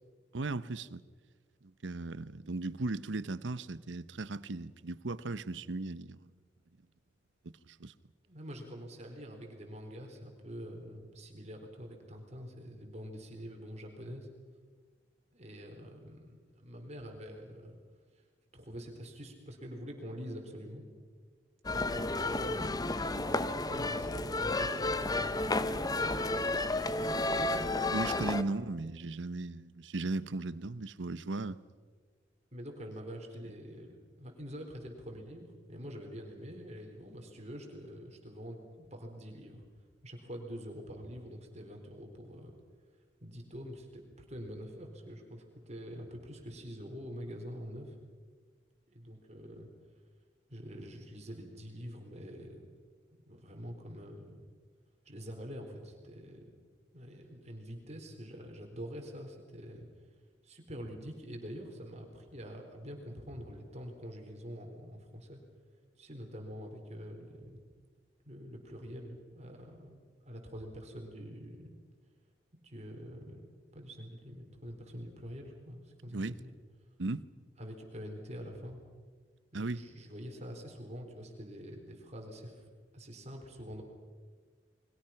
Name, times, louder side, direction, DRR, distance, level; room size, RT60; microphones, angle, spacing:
voice 1, 0.3-1.0 1.8-6.3 7.4-7.9 27.9-31.6 76.1-76.4 77.0-77.3 79.5-79.8, right 2 dB, 80° right, 0.9 m, -37 dB
voice 2, 8.2-14.3 15.3-17.8 18.2-18.3 18.5-20.9 21.7-22.7 23.2-27.1 32.5-39.6 40.0-42.5 43.2-48.0 48.9-49.7 50.5-52.7 53.3-54.4 55.0-56.5 56.9-59.9 60.4-65.4 66.0-67.6 68.2-71.8 72.5-76.5 77.6-78.8 79.5-82.6 82.9-83.8, equal, 35° right, 4.2 m, -46 dB
sound 1, 21.6-28.4, left 2 dB, 20° left, 0.8 m, -32 dB
30.0 x 22.5 x 5.9 m
head